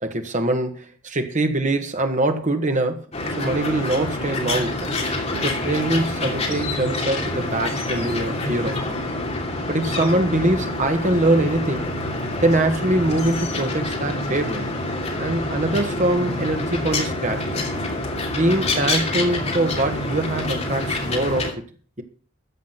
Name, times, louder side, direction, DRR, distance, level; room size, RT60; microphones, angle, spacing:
voice 1, 0.0-3.1 3.4-4.9 5.3-9.0 9.7-11.9 12.4-14.7 15.2-17.7 18.3-21.5, right 1 dB, 35° right, 1.7 m, -23 dB
sound 1, 3.1-21.5, left 2 dB, 30° left, 2.7 m, -26 dB
14.0 x 7.4 x 6.0 m
head